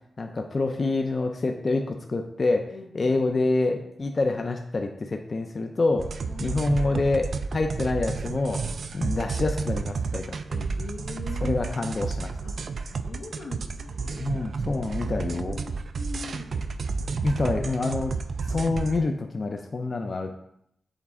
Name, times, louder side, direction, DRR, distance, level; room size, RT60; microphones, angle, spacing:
voice 1, 0.2-6.1 6.4-10.4 11.4-12.3 14.2-15.6 17.2-18.2 18.5-20.3, left 3 dB, 35° left, 4 dB, 0.5 m, -27 dB
voice 2, 2.7-3.3 6.2-6.9 10.5-11.8 12.4-14.3 15.3-16.8, left 3 dB, 85° left, 1 dB, 1.0 m, -42 dB
sound 1, 6.0-19.0, right 4 dB, 55° right, 0.3 m, -31 dB
7.2 x 4.2 x 3.6 m, 0.73 s
wide cardioid pair, 135°, 0 cm